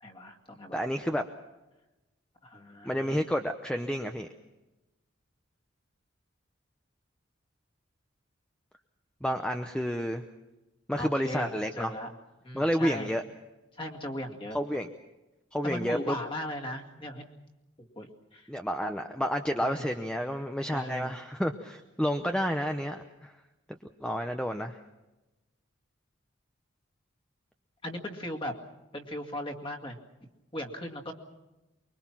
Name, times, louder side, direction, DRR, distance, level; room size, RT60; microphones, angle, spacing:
voice 1, 0.0-0.8 2.4-3.2 10.9-12.1 12.4-13.1 13.7-14.6 15.6-17.2 17.8-18.5 19.6-19.9 20.7-21.1 27.8-28.5 28.9-31.1, left 1 dB, 25° left, 2 dB, 2.3 m, -38 dB
voice 2, 0.7-1.2 2.8-4.3 9.2-10.2 10.9-11.9 12.5-13.2 14.5-14.9 15.5-16.1 18.5-23.3 24.0-24.8, equal, 5° left, 6 dB, 0.7 m, -30 dB
24.5 x 23.0 x 6.0 m, 1.0 s
head